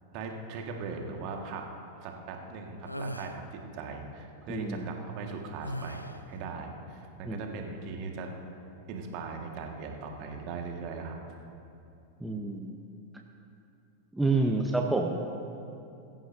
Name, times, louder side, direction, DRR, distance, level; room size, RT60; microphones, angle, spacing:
voice 1, 0.1-1.7 2.0-8.3 8.9-11.2, right 4 dB, 45° right, 2 dB, 1.8 m, -39 dB
sound 1, 2.8-3.4 5.6-6.3, equal, 90° left, 0.7 m, -38 dB
voice 2, 4.5-4.9 7.2-7.4 12.2-12.8 14.1-15.2, right 3 dB, 5° right, 1 dB, 0.9 m, -28 dB
22.5 x 14.0 x 2.8 m, 2.6 s
figure-of-eight pair, 90°, 0 cm